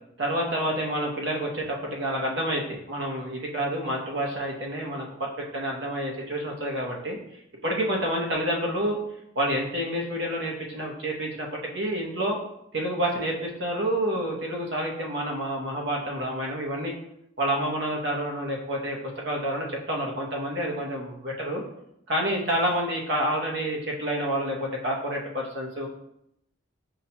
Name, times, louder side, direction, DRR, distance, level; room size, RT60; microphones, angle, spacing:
voice 1, 0.2-7.2 7.6-9.0 9.3-11.5 11.7-12.4 12.7-16.9 17.4-19.0 19.2-21.6 22.1-25.9, right 1 dB, 60° right, -1 dB, 0.8 m, -28 dB
5.5 x 2.2 x 2.8 m, 0.78 s
head